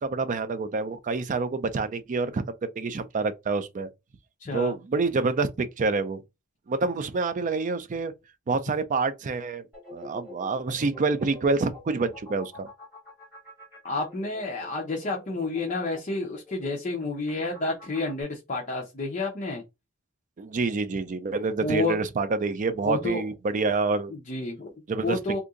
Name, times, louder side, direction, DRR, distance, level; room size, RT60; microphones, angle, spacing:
voice 1, 0.0-3.9 4.5-6.2 6.7-8.1 8.5-9.6 9.9-12.7 20.4-24.1 24.9-25.4, right 3 dB, 40° right, 0.4 m, -27 dB
voice 2, 4.4-4.7 13.8-19.6 21.6-21.9 22.8-23.2 24.1-24.7 25.0-25.4, left 2 dB, 35° left, 0.6 m, -30 dB
sound 1, 9.7-18.2, left 2 dB, 10° right, 1.7 m, -47 dB
2.7 x 2.6 x 3.6 m
head